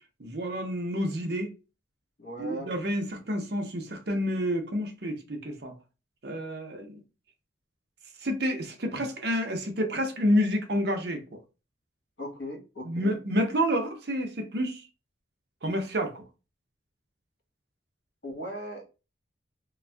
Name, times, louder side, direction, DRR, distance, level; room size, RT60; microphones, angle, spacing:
voice 1, 0.2-1.5 2.4-5.7 6.2-7.0 8.2-11.2 12.8-14.9 15.6-16.2, equal, 55° right, 0.7 m, -29 dB
voice 2, 2.2-2.7 12.2-13.1 18.2-18.9, equal, 65° left, 1.2 m, -38 dB
2.5 x 2.3 x 3.3 m
head